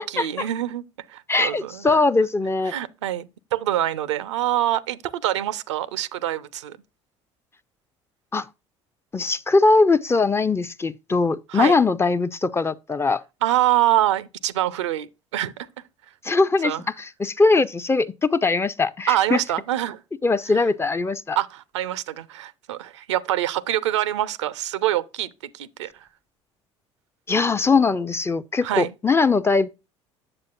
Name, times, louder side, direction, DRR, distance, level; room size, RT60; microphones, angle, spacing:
voice 1, 0.0-2.0 2.7-6.8 11.5-11.8 13.4-15.7 16.6-16.8 19.1-20.0 21.4-26.1 28.6-28.9, right 13 dB, 75° right, 0.5 m, -25 dB
voice 2, 1.3-2.7 8.3-8.5 9.1-13.2 16.2-16.7 17.0-19.4 20.2-21.4 27.3-29.7, left 3 dB, 15° left, 0.5 m, -21 dB
8.8 x 7.3 x 2.4 m
figure-of-eight pair, 60°, 15 cm